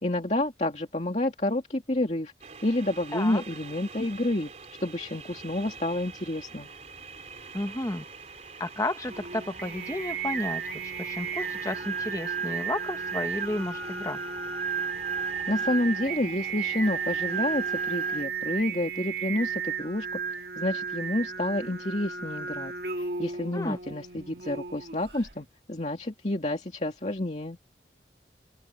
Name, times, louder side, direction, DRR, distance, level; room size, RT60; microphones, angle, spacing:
voice 1, 0.0-2.3 2.6-4.5 4.8-6.7 15.5-20.1 20.6-22.7 23.2-27.6, left 1 dB, 40° left, 2.4 m, -29 dB
sound 1, 2.4-18.2, right 4 dB, 40° right, 4.1 m, -45 dB
voice 2, 7.5-8.1 8.6-14.2 23.5-23.8, left 1 dB, 20° left, 1.1 m, -32 dB
Singing, 9.1-25.3, right 6 dB, 60° right, 1.8 m, -33 dB
open air
head